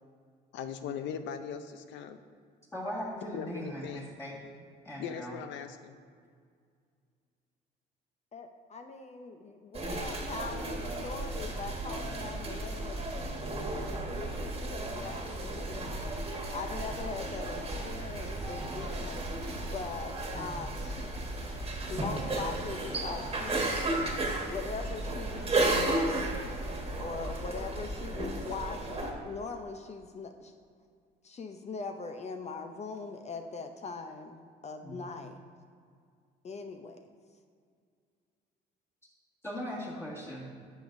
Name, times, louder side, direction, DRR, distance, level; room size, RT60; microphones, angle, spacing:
voice 1, 0.5-2.2 3.3-4.1 5.0-6.0, left 7 dB, 75° left, 9 dB, 0.6 m, -39 dB
voice 2, 2.7-4.4 4.8-5.4 20.4-20.6 34.8-35.1 39.4-40.5, equal, 15° left, -7 dB, 1.8 m, -39 dB
voice 3, 8.3-15.9 16.5-19.2 19.6-21.1 21.9-23.8 24.5-26.3 26.9-30.5 31.2-35.4 36.4-37.1, left 4 dB, 35° left, 6 dB, 0.6 m, -41 dB
sound 1, 9.7-29.1, right 2 dB, 30° right, 1.5 m, -34 dB
sound 2, 10.1-25.8, right 2 dB, 85° right, 1.7 m, -50 dB
11.0 x 7.0 x 2.6 m, 2.1 s
cardioid pair, 90°, 19 cm